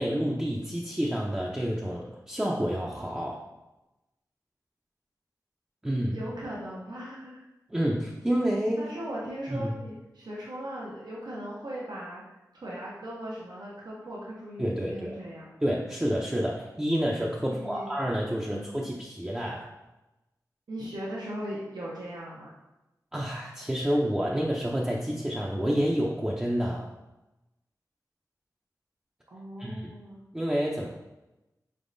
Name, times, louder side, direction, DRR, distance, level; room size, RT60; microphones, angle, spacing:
voice 1, 0.0-3.4 5.8-6.2 7.7-8.9 9.5-9.7 14.6-15.2 15.6-19.7 23.1-26.9 29.6-29.9 30.3-30.9, equal, 10° right, -3 dB, 0.5 m, -29 dB
voice 2, 6.1-7.4 8.8-12.2 12.5-15.5 17.4-17.9 18.5-18.8 20.7-22.5 29.3-30.2, equal, 85° right, -6 dB, 0.8 m, -38 dB
4.2 x 3.5 x 2.5 m, 1.0 s
wide cardioid pair, 70°, 7 cm